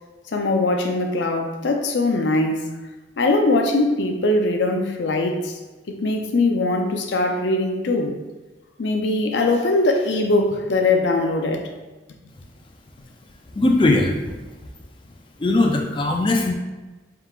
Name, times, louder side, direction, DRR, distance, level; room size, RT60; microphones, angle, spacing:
voice 1, 0.3-2.7 3.2-5.6 5.9-8.1 8.8-11.6, left 2 dB, 80° left, 4 dB, 0.5 m, -21 dB
voice 2, 13.6-14.4 15.4-16.5, left 2 dB, 25° left, 2 dB, 0.4 m, -19 dB
4.4 x 3.7 x 2.4 m, 1.2 s
head